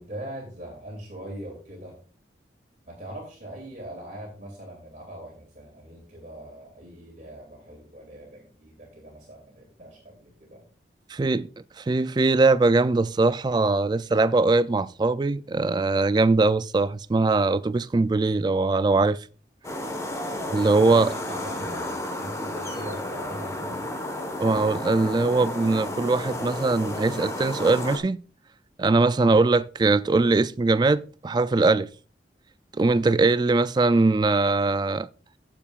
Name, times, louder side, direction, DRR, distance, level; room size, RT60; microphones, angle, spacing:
voice 1, 0.0-1.9 2.9-10.6 20.3-20.7 21.0-23.8, right 1 dB, 45° right, 2.6 m, -41 dB
voice 2, 11.1-11.5 11.8-19.2 20.5-21.1 24.4-28.2 28.8-31.9 32.8-35.1, right 3 dB, 25° right, 0.3 m, -21 dB
sound 1, 19.6-28.0, left 1 dB, 15° left, 1.3 m, -32 dB
14.0 x 7.2 x 2.4 m
head